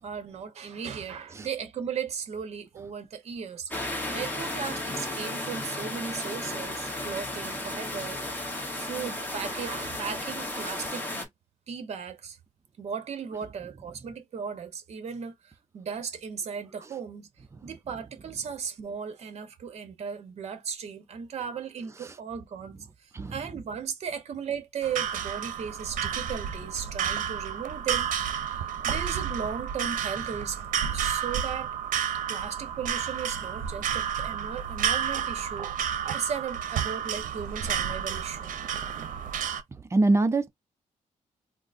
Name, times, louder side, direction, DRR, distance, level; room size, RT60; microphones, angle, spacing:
voice 1, 0.0-11.3 11.7-12.4 12.8-17.3 17.6-28.1 28.5-28.6 28.8-30.6 30.9-31.7 32.3-35.8 36.1-38.5, right 7 dB, 55° right, 0.8 m, -36 dB
sound 1, 3.7-11.3, left 1 dB, 15° left, 1.0 m, -34 dB
sound 2, 24.8-39.6, right 8 dB, 85° right, 0.6 m, -31 dB
voice 2, 39.7-40.5, right 2 dB, 20° right, 0.5 m, -24 dB
3.7 x 2.5 x 2.5 m
wide cardioid pair, 150°, 13 cm